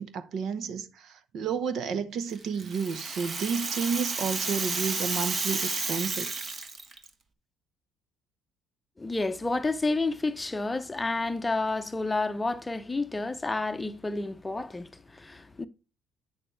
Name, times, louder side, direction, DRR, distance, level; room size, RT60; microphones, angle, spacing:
voice 1, 0.0-6.3, right 6 dB, 60° right, 0.9 m, -31 dB
Rattle (instrument), 2.3-7.1, right 3 dB, 35° right, 1.2 m, -32 dB
voice 2, 9.0-14.9 15.2-15.7, left 3 dB, 15° left, 0.7 m, -30 dB
8.6 x 6.7 x 3.2 m
cardioid pair, 95°, 0 cm